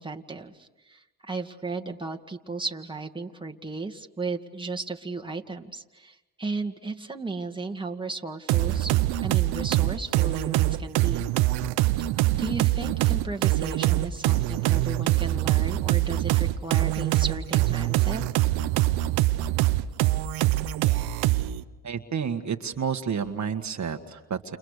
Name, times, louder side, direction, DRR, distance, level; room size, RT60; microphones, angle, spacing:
voice 1, 0.0-11.2 12.3-18.2, right 3 dB, 15° right, 4 dB, 2.2 m, -35 dB
sound 1, 8.5-21.6, right 16 dB, 90° right, 0.9 m, -24 dB
voice 2, 21.8-24.6, right 7 dB, 50° right, 6 dB, 1.8 m, -30 dB
29.5 x 29.0 x 6.7 m, 1.1 s
supercardioid pair, 70°, 37 cm